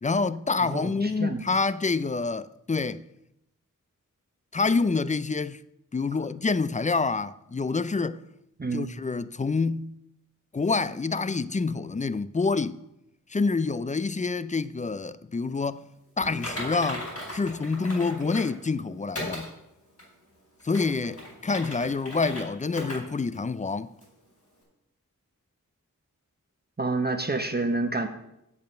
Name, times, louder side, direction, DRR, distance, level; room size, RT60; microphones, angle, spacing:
voice 1, 0.0-3.0 4.5-5.6 5.9-8.2 8.7-9.9 10.5-12.8 13.3-15.9 16.2-19.5 20.6-23.9, left 4 dB, 25° left, 0.3 m, -27 dB
voice 2, 0.6-1.4 8.6-8.9 26.8-28.1, right 3 dB, 30° right, 0.8 m, -28 dB
Typing, 16.2-18.6 19.1-19.5 20.0-20.1 20.6-22.4 22.7-23.0 23.3-23.4 24.0-24.1, left 1 dB, 50° left, 4.7 m, -37 dB
8.0 x 7.0 x 6.3 m
wide cardioid pair, 80°, 33 cm